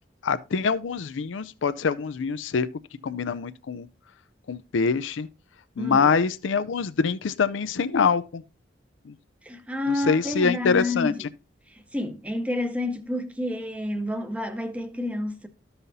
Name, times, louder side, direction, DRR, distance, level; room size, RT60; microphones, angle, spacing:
voice 1, 0.2-2.7 3.0-3.9 4.5-5.3 5.8-8.4 9.1-9.2 9.9-11.1, left 5 dB, 85° left, 0.5 m, -24 dB
voice 2, 5.8-6.2 9.4-11.3 11.7-15.5, left 1 dB, 5° right, 0.7 m, -29 dB
13.5 x 5.6 x 2.7 m
head